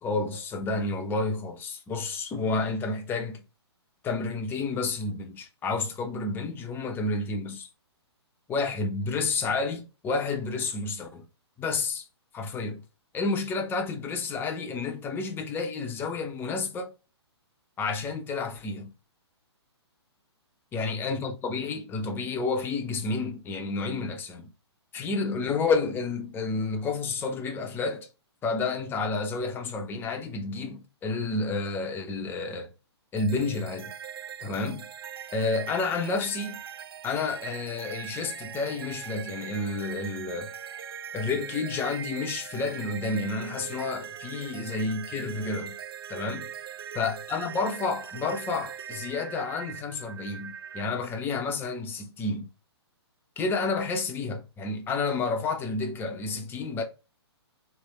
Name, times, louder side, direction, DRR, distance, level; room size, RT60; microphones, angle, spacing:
voice 1, 0.0-3.4 4.0-7.7 8.5-11.2 11.6-12.0 12.3-12.8 13.1-16.9 17.8-18.9 20.7-24.5 24.9-28.1 28.4-32.7 33.1-33.9 34.4-34.9 35.3-36.6 37.0-40.5 41.1-45.8 46.1-46.5 46.9-52.5 53.4-56.8, left 3 dB, 15° left, 0.8 m, -30 dB
sound 1, 33.2-50.8, right 9 dB, 60° right, 0.5 m, -41 dB
3.3 x 3.1 x 4.1 m
figure-of-eight pair, 125°, 14 cm